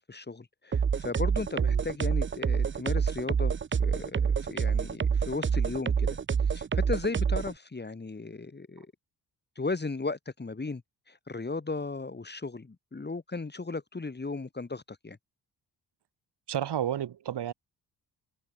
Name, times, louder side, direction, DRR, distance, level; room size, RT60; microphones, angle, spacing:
voice 1, 0.0-3.5 3.8-6.2 6.5-8.9 9.6-10.8 11.1-15.2, left 3 dB, 25° left, 2.5 m, -36 dB
sound 1, 0.7-7.5, right 6 dB, 30° right, 0.7 m, -27 dB
voice 2, 16.5-17.5, right 10 dB, 75° right, 5.9 m, -31 dB
cardioid pair, 70°, 41 cm